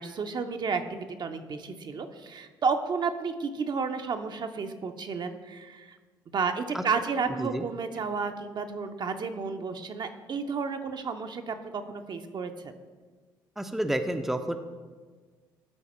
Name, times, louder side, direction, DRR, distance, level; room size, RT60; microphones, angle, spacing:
voice 1, 0.0-6.0 6.3-12.7, right 5 dB, 40° right, 6 dB, 0.7 m, -32 dB
voice 2, 13.6-14.6, right 1 dB, ahead, 6 dB, 0.6 m, -29 dB
12.0 x 4.2 x 4.3 m, 1.4 s
figure-of-eight pair, 50°, 11 cm